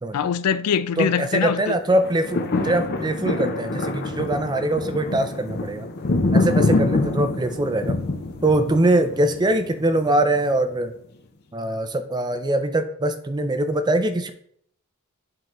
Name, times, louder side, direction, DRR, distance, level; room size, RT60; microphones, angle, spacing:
voice 1, 0.1-1.8, left 7 dB, 85° left, 0.4 m, -23 dB
voice 2, 1.0-5.9 6.3-8.0 8.4-10.9 11.5-14.3, right 1 dB, 20° right, 0.4 m, -22 dB
sound 1, 1.9-10.2 10.7-10.8, left 2 dB, 45° left, 0.6 m, -25 dB
8.7 x 3.6 x 3.0 m
head